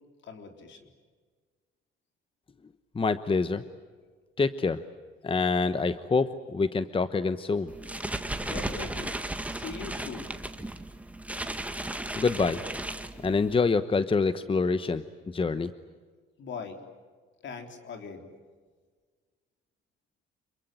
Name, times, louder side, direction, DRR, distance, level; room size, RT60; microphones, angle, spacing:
voice 1, 0.2-0.9 8.4-9.2 9.5-10.4 16.4-16.8 17.4-18.3, left 5 dB, 65° left, 5 dB, 3.8 m, -41 dB
voice 2, 2.9-3.6 4.4-4.8 5.2-7.7 12.2-12.6 13.2-15.7, left 4 dB, 25° left, 12 dB, 1.0 m, -26 dB
sound 1, 7.7-13.6, right 1 dB, 5° right, 1.8 m, -35 dB
27.0 x 22.5 x 9.2 m, 1.5 s
cardioid pair, 90°, 20 cm